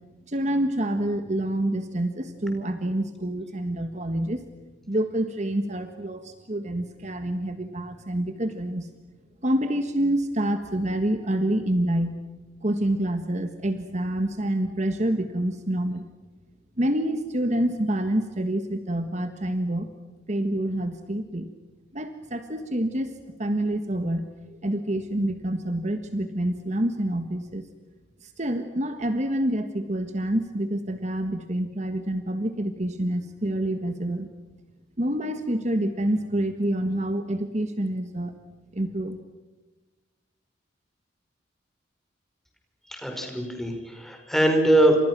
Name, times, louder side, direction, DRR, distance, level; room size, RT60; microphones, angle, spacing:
voice 1, 0.3-4.4 4.9-8.9 9.4-12.2 12.6-16.0 16.8-19.9 20.3-21.5 21.9-27.7 28.2-34.3 35.0-38.3 38.7-39.2, right 1 dB, 40° right, 8 dB, 1.6 m, -27 dB
voice 2, 42.9-45.0, right 1 dB, ahead, 3 dB, 5.1 m, -22 dB
29.5 x 27.5 x 6.1 m, 1.2 s
head